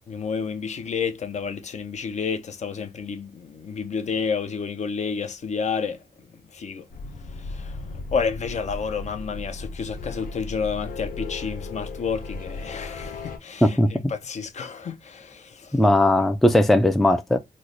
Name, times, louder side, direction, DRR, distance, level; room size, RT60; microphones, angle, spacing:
voice 1, 0.1-6.0 6.5-6.9 7.3-15.8, left 5 dB, 50° left, 0.6 m, -30 dB
sound 1, 6.9-13.4, left 3 dB, 85° left, 0.7 m, -36 dB
voice 2, 15.7-17.4, left 1 dB, ahead, 0.3 m, -18 dB
3.1 x 2.1 x 3.8 m
wide cardioid pair, 135°, 15 cm